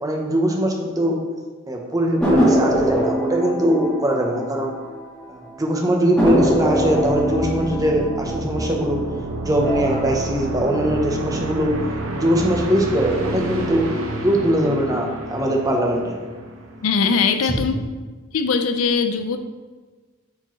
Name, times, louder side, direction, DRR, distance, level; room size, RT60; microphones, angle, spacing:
voice 1, 0.0-1.2 1.7-4.7 5.3-9.0 9.4-11.7 12.1-13.9 14.2-16.1 17.4-17.5, equal, 15° right, 0 dB, 0.9 m, -21 dB
sound 1, 2.2-5.3 5.6-5.7 6.2-9.1 9.5-10.1, equal, 5° left, 1.5 m, -22 dB
sound 2, 6.3-17.0, right 1 dB, 80° right, 0.9 m, -30 dB
voice 2, 16.8-17.8 18.3-19.4, left 5 dB, 85° left, 9 dB, 0.5 m, -20 dB
8.4 x 4.5 x 3.1 m, 1.3 s
head